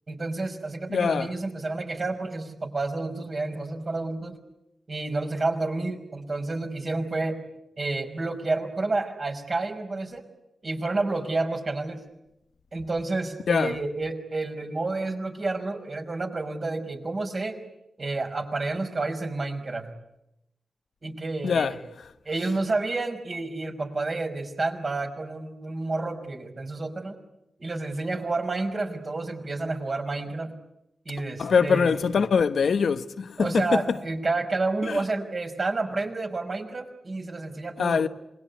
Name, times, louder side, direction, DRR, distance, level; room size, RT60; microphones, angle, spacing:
voice 1, 0.1-4.3 4.9-7.4 7.8-10.2 10.6-12.0 12.7-17.6 18.0-19.9 21.0-21.8 22.3-27.1 27.6-30.5 31.1-32.2 33.4-38.1, right 3 dB, 45° right, 5.3 m, -30 dB
voice 2, 0.9-1.3 13.5-13.8 21.4-22.1 31.4-34.0 34.8-35.0 37.8-38.1, left 6 dB, 80° left, 1.0 m, -24 dB
27.0 x 21.5 x 9.5 m
cardioid pair, 70°, 0 cm